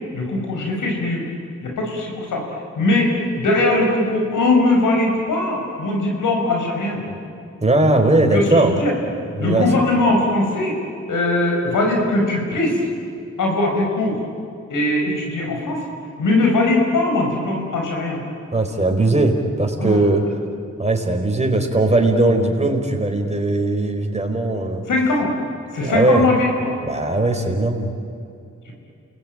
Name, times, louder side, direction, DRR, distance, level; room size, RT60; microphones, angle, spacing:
voice 1, 0.1-1.3 1.6-2.5 2.8-7.2 8.3-8.9 9.4-10.8 11.1-12.8 13.4-14.2 14.7-15.8 16.2-18.2 19.8-20.0 21.3-21.4 24.9-25.3 25.7-26.8 28.7-28.8, left 2 dB, 85° left, 1 dB, 5.4 m, -20 dB
voice 2, 7.6-8.7 9.4-9.6 18.5-20.2 20.8-24.8 25.8-26.3 26.8-27.9, right 2 dB, 20° right, 2 dB, 4.9 m, -19 dB
28.5 x 19.0 x 9.3 m, 2.5 s
supercardioid pair, 45°, 31 cm